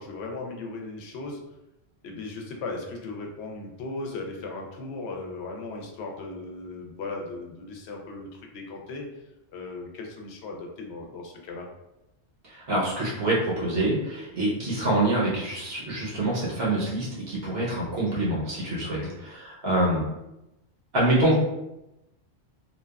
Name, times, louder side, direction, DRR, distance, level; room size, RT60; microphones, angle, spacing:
voice 1, 0.0-1.4 2.0-9.1 9.5-11.7 18.9-19.2, left 3 dB, 70° left, 1 dB, 0.8 m, -37 dB
voice 2, 12.4-20.1 20.9-21.4, right 1 dB, 60° right, -5 dB, 1.0 m, -26 dB
2.8 x 2.2 x 2.2 m, 0.92 s
omnidirectional pair, 1.2 m